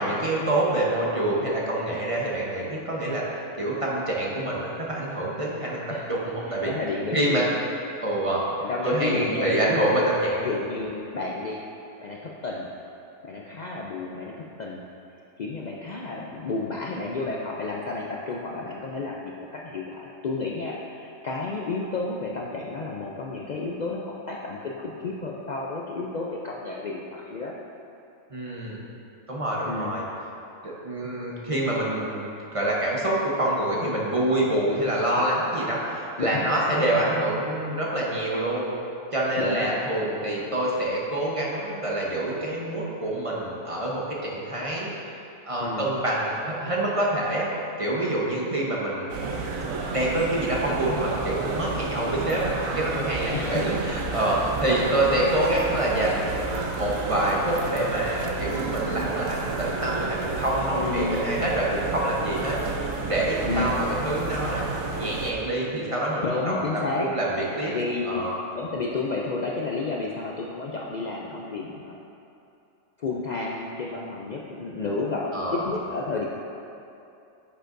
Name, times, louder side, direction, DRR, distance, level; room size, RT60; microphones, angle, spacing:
voice 1, 0.0-3.2 3.6-6.7 7.1-7.4 8.0-8.4 8.8-10.5 28.3-28.8 29.3-30.1 30.6-38.7 39.1-44.9 45.5-47.5 47.8-49.0 49.9-56.4 56.8-62.6 63.1-64.6 65.0-66.5 67.0-67.7 68.0-68.3 75.3-75.6, right 1 dB, 25° right, -4 dB, 0.9 m, -26 dB
voice 2, 6.5-7.6 8.4-9.9 10.4-11.6 12.0-12.7 13.2-14.8 15.4-27.5 29.7-29.9 34.9-35.3 36.2-36.5 39.4-39.7 45.6-45.9 53.3-53.6 60.8-61.3 63.5-63.7 66.2-67.1 67.4-68.2 68.5-72.0 73.0-76.2, left 3 dB, 80° left, -3 dB, 0.3 m, -31 dB
sound 1, 49.1-65.3, right 3 dB, 75° right, 1.1 m, -31 dB
9.7 x 6.7 x 2.6 m, 2.7 s
omnidirectional pair, 1.4 m